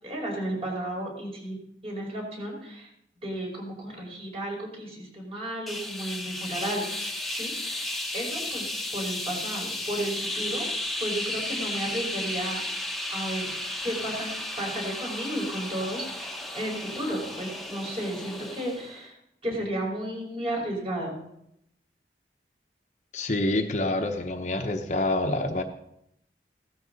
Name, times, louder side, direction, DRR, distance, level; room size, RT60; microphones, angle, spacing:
voice 1, 0.0-1.6 1.8-2.9 3.2-7.0 7.3-10.6 11.0-12.6 13.1-13.4 13.8-19.1 19.4-21.2, right 1 dB, 35° right, -2 dB, 5.1 m, -33 dB
sound 1, 5.7-19.0, left 1 dB, ahead, 1.1 m, -34 dB
voice 2, 23.1-25.6, left 2 dB, 40° left, 4 dB, 0.9 m, -27 dB
16.5 x 12.5 x 4.0 m, 0.76 s
head